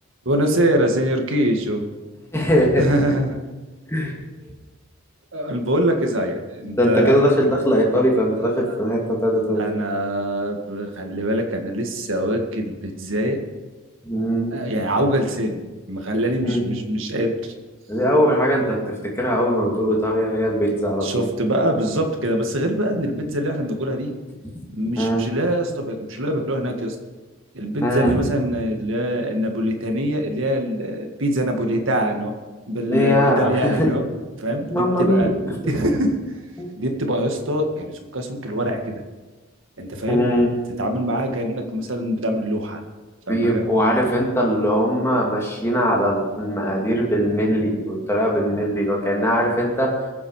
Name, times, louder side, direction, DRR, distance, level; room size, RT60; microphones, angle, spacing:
voice 1, 0.3-1.9 2.8-3.4 5.3-7.4 8.3-8.8 9.5-13.4 14.5-17.5 20.6-20.7 21.0-24.1 24.7-27.0 27.5-32.3 32.7-34.0 34.4-35.3 35.7-36.2 36.8-39.0 39.8-40.3 40.8-42.8 43.3-43.6, equal, 65° right, 4 dB, 1.9 m, -24 dB
voice 2, 2.3-2.9 3.9-4.1 6.8-9.6 14.0-14.6 16.4-16.6 17.9-21.3 24.5-24.6 25.0-25.3 27.8-28.2 32.9-33.9 34.7-35.7 36.6-36.7 40.1-40.5 43.3-49.9, equal, 10° left, -2 dB, 2.6 m, -20 dB
21.5 x 7.6 x 4.9 m, 1.2 s
head